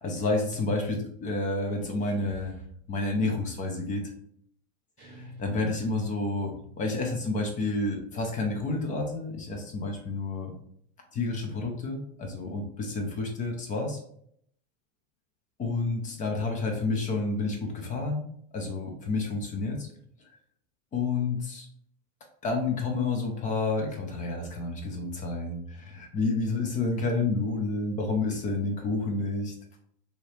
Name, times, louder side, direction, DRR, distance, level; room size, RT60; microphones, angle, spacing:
voice 1, 0.0-2.5 2.9-4.1 5.4-10.5 11.1-14.0 15.6-18.2 18.5-19.9 20.9-21.7 22.4-29.5, left 3 dB, 20° left, 3 dB, 0.4 m, -29 dB
sound 1, 5.0-7.5, left 2 dB, 30° right, 0.7 m, -48 dB
2.9 x 2.7 x 3.2 m, 0.68 s
supercardioid pair, 145°, 38 cm